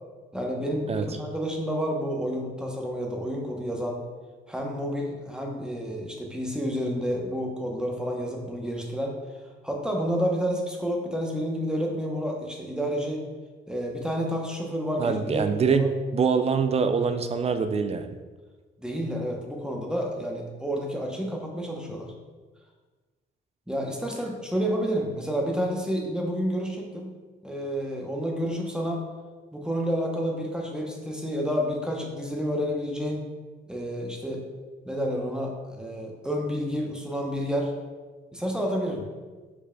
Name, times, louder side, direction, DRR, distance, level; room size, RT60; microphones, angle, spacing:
voice 1, 0.3-4.0 4.5-9.2 9.6-13.2 13.7-15.9 18.8-22.1 23.7-27.1 27.4-29.1 29.5-33.3 33.7-34.4 34.8-37.7 38.3-39.0, equal, 5° right, 0 dB, 0.8 m, -30 dB
voice 2, 15.0-18.1, right 5 dB, 30° right, 8 dB, 0.3 m, -24 dB
4.7 x 4.6 x 2.2 m, 1.3 s
cardioid pair, 90°, 20 cm